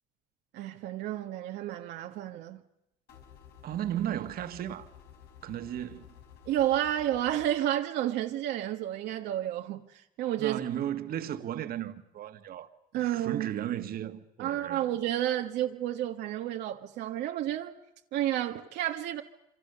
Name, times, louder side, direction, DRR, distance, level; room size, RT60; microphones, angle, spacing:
voice 1, 0.5-2.6 6.5-10.6 12.9-13.5 14.4-17.7 18.1-19.2, right 12 dB, 80° right, 1.4 m, -31 dB
sound 1, 3.1-7.5, left 8 dB, 75° left, 4.9 m, -53 dB
voice 2, 3.6-4.9 5.4-6.1 10.4-12.7 13.0-14.8, right 11 dB, 60° right, 1.7 m, -35 dB
27.5 x 25.5 x 6.8 m
cardioid pair, 110°, 17 cm